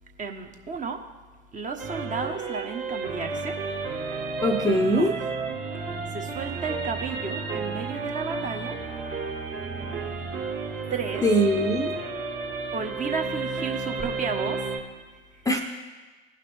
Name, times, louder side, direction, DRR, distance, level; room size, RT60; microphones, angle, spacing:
voice 1, 0.2-1.0 1.5-3.6 4.9-5.1 6.1-8.8 10.9-11.2 12.7-14.7 15.3-15.4, right 5 dB, 25° right, 4 dB, 1.0 m, -33 dB
sound 1, 1.8-14.8, right 4 dB, 40° right, 2.0 m, -32 dB
voice 2, 4.4-5.2 11.2-11.9 15.4-15.6, equal, 10° left, 3 dB, 0.7 m, -22 dB
17.0 x 5.8 x 3.3 m, 1.3 s
figure-of-eight pair, 80°, 32 cm